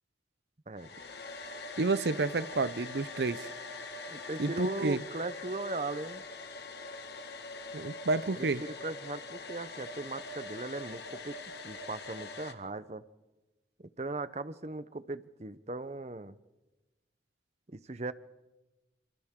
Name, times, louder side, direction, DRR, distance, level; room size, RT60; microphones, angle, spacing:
Domestic sounds home sounds, 0.8-12.5, left 3 dB, 70° left, 1.6 m, -43 dB
voice 1, 1.8-3.5 4.4-5.0 7.7-8.6, right 3 dB, 70° right, 0.7 m, -30 dB
voice 2, 4.1-6.2 8.4-11.4 11.6-13.0 13.8-16.4 17.7-18.1, right 2 dB, 40° right, 0.8 m, -38 dB
28.5 x 27.0 x 3.8 m
head